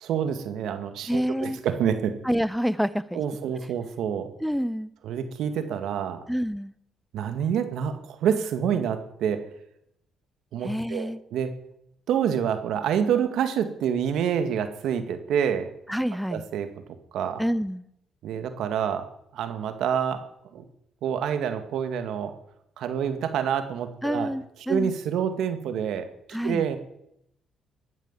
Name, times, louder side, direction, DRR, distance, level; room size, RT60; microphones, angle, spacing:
voice 1, 0.0-2.2 3.1-4.3 5.0-6.2 7.1-9.5 10.5-11.6 12.1-15.7 16.3-16.7 17.1-17.4 18.2-20.2 20.5-20.7 21.0-22.3 22.8-24.3 24.7-26.1 26.4-26.8, right 8 dB, 75° right, 9 dB, 2.0 m, -27 dB
voice 2, 1.1-1.6 2.2-3.2 4.4-4.9 6.3-6.7 10.6-11.2 15.9-16.4 17.4-17.8 24.0-24.9 26.3-26.7, equal, ahead, 16 dB, 0.9 m, -27 dB
21.0 x 7.4 x 7.5 m, 0.77 s
supercardioid pair, 65°, 0 cm